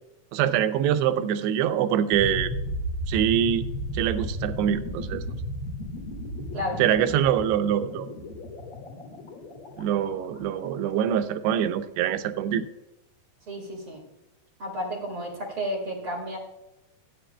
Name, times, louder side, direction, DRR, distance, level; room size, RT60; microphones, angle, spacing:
voice 1, 0.3-2.5 3.1-3.7 3.9-5.2 6.8-8.1 9.8-12.7, right 10 dB, 90° right, 8 dB, 2.8 m, -24 dB
sound 1, 2.1-11.0, equal, 50° left, 1.5 m, -34 dB
voice 2, 13.5-14.0 14.6-16.4, equal, 40° right, -1 dB, 2.2 m, -32 dB
16.5 x 9.2 x 2.2 m, 0.93 s
omnidirectional pair, 4.7 m